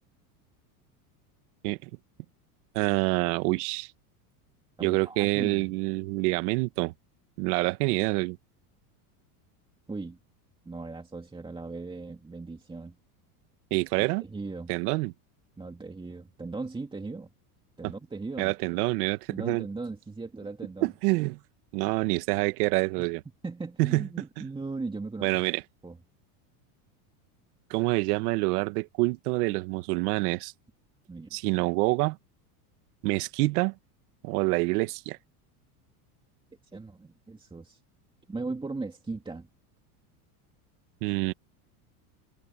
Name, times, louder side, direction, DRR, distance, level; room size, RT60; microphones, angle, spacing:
voice 1, 2.7-3.9 4.8-6.9 7.4-8.4 13.7-14.2 14.7-15.1 18.4-19.6 20.8-21.4 21.7-23.2 23.8-24.1 24.4-24.5 25.2-25.6 27.7-30.5 31.3-32.2 33.0-33.7 34.2-35.2 41.0-41.3, right 23 dB, 70° right, 1.7 m, -27 dB
voice 2, 4.8-5.7 9.9-10.2 10.7-13.0 14.0-14.7 15.6-17.3 17.8-18.5 19.3-20.9 23.0-23.1 23.4-25.3 25.8-26.0 31.1-31.4 36.7-37.8 38.3-39.5, right 3 dB, 10° right, 2.2 m, -38 dB
supercardioid pair, 125°, 46 cm